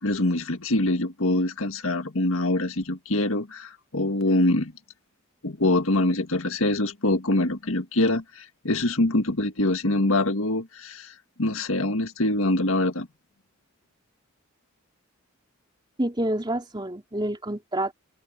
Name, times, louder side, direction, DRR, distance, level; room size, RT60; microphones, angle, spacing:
voice 1, 0.0-4.7 5.4-13.1, left 2 dB, 75° left, 1.8 m, -24 dB
voice 2, 16.0-17.9, right 1 dB, 20° right, 3.5 m, -28 dB
open air
head